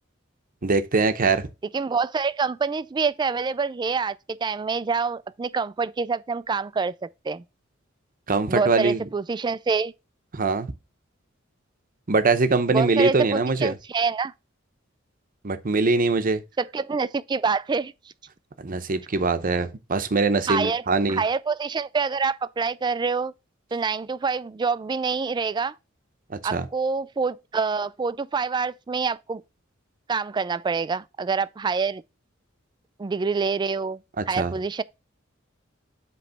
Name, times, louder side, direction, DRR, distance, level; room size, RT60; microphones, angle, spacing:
voice 1, 0.6-1.5 8.3-9.0 10.3-10.7 12.1-13.7 15.4-16.4 18.6-21.2 26.5-26.7 34.2-34.5, right 3 dB, 45° right, 0.8 m, -22 dB
voice 2, 1.7-7.4 8.5-9.9 12.7-14.3 16.6-17.9 20.5-20.8 21.1-23.3 23.7-25.7 26.4-29.4 30.1-32.0 33.0-34.0 34.3-34.8, right 5 dB, 20° right, 0.3 m, -26 dB
8.0 x 3.2 x 5.6 m
head